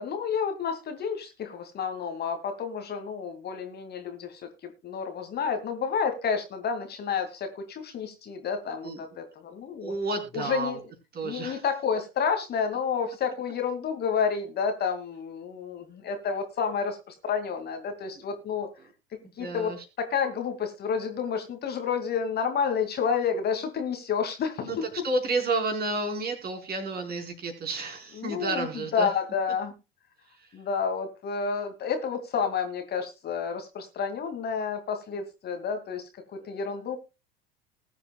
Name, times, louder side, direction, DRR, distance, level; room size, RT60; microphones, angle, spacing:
voice 1, 0.0-9.9 10.3-10.8 11.2-18.7 19.4-19.7 20.0-25.0 28.2-28.7 28.9-29.7 30.5-36.0 36.5-37.0, left 6 dB, 35° left, 6 dB, 2.3 m, -30 dB
voice 2, 9.8-10.8 11.1-11.6 19.4-19.8 24.6-24.8 25.0-29.1 36.4-36.7, right 3 dB, 30° right, 4 dB, 4.5 m, -31 dB
20.0 x 8.2 x 2.3 m, 0.28 s
figure-of-eight pair, 75°, 30 cm